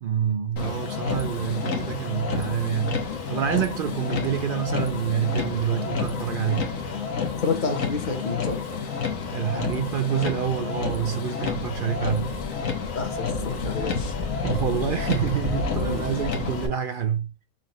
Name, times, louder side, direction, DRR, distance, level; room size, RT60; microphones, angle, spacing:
voice 1, 0.0-6.7 9.3-12.4 14.4-17.3, right 9 dB, 65° right, 0.5 m, -27 dB
Motor vehicle (road), 0.6-16.7, left 5 dB, 80° left, 1.4 m, -29 dB
voice 2, 7.4-8.6 12.9-14.1 15.8-16.1, left 5 dB, 40° left, 1.0 m, -29 dB
5.7 x 2.6 x 2.8 m
omnidirectional pair, 1.4 m